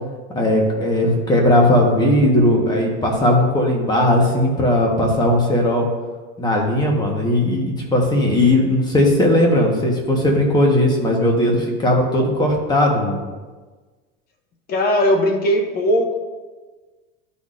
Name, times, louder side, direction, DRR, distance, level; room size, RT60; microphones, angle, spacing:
voice 1, 0.3-5.9 6.4-13.2, left 1 dB, 15° left, 0 dB, 1.1 m, -17 dB
voice 2, 14.7-16.2, equal, 30° left, 4 dB, 0.7 m, -18 dB
12.0 x 4.2 x 2.5 m, 1.3 s
supercardioid pair, 140°, 30 cm